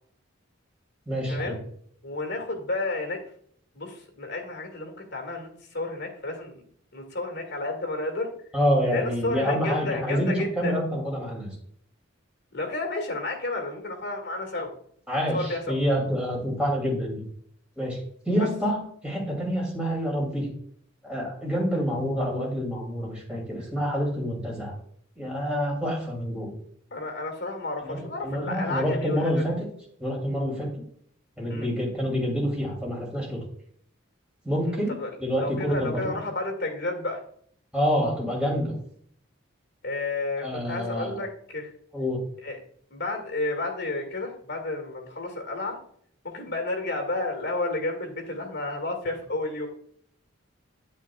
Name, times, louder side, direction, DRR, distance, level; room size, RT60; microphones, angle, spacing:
voice 1, 1.1-1.6 8.5-11.5 15.1-17.2 17.8-18.0 18.2-20.5 21.0-24.7 25.2-26.5 27.8-29.6 30.0-30.7 31.4-33.4 34.4-36.2 37.7-38.7 40.4-41.2 41.9-42.2, equal, 5° right, -3 dB, 2.7 m, -27 dB
voice 2, 2.0-3.2 3.7-6.6 6.9-8.3 8.9-10.8 12.5-14.7 15.3-15.8 18.4-18.5 26.9-29.4 31.5-31.7 34.7-34.8 35.0-35.1 35.4-37.2 39.8-41.7 42.4-42.6 42.9-45.8 46.2-49.7, left 2 dB, 55° left, 3 dB, 1.9 m, -31 dB
8.9 x 8.5 x 2.4 m, 0.64 s
head